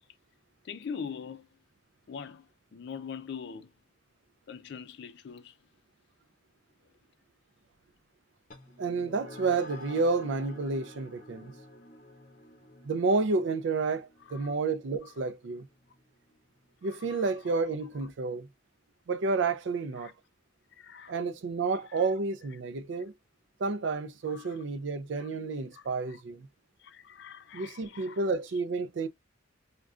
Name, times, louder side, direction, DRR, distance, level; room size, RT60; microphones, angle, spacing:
voice 1, 0.6-1.5 2.1-3.7 4.5-5.5 14.3-14.5 17.1-17.2 20.0-20.1 20.8-21.1 21.9-22.0 24.3-24.5 25.7-26.2 26.8-28.2, left 6 dB, 60° left, 0.4 m, -42 dB
sound 1, 8.5-17.3, left 1 dB, 45° left, 0.7 m, -51 dB
voice 2, 8.8-11.5 12.8-15.7 16.8-18.5 19.1-20.1 21.1-23.1 23.6-26.5 27.5-29.1, right 4 dB, 70° right, 0.4 m, -30 dB
3.5 x 2.2 x 2.4 m
head